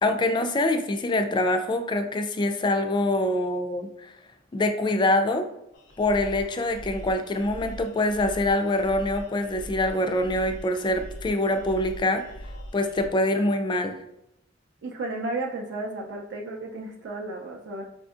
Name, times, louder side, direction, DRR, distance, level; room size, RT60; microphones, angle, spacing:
voice 1, 0.0-4.1 4.5-5.5 6.0-12.3 12.7-14.0, left 1 dB, 25° left, 7 dB, 0.3 m, -25 dB
sound 1, 5.7-13.1, equal, 90° left, 0.7 m, -41 dB
voice 2, 14.8-17.8, right 2 dB, 65° right, 0 dB, 0.4 m, -33 dB
4.8 x 2.6 x 2.4 m, 0.83 s
head